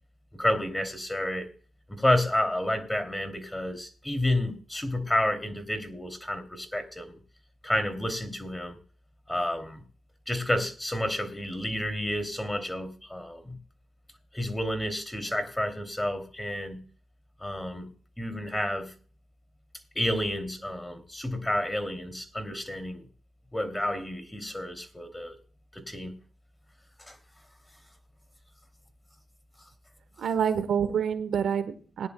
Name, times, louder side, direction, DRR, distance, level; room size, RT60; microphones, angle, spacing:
voice 1, 0.3-1.5 1.9-7.2 7.6-8.8 9.3-9.8 10.3-13.6 14.3-16.8 17.4-17.9 18.2-18.9 19.9-23.0 23.5-25.4 25.7-26.1 27.0-27.2, left 1 dB, 10° left, 7 dB, 2.7 m, -30 dB
voice 2, 30.2-32.1, right 7 dB, 70° right, 11 dB, 1.1 m, -27 dB
20.5 x 10.5 x 2.2 m, 0.41 s
supercardioid pair, 60°, 0 cm